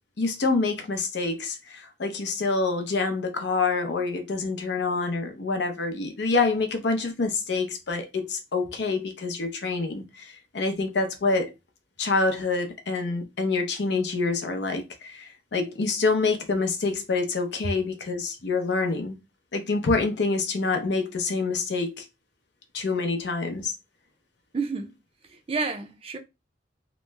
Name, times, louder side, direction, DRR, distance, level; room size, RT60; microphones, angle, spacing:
voice 1, 0.2-11.5 12.0-19.2 19.5-22.1 22.7-23.7, left 3 dB, 70° left, 0.6 m, -26 dB
voice 2, 24.5-25.0 25.3-26.2, right 4 dB, 35° right, 0.4 m, -30 dB
2.9 x 2.1 x 3.2 m
head